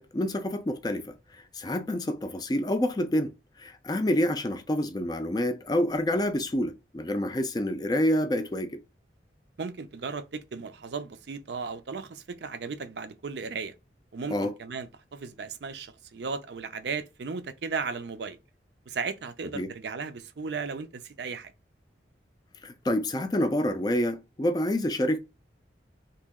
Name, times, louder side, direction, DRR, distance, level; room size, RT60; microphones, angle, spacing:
voice 1, 0.0-3.3 3.6-8.8 14.3-14.5 19.5-19.7 22.6-25.2, left 1 dB, 20° left, 0.4 m, -28 dB
voice 2, 9.6-13.7 14.1-18.4 18.9-21.5, right 5 dB, 70° right, 0.5 m, -36 dB
3.0 x 2.7 x 3.6 m
head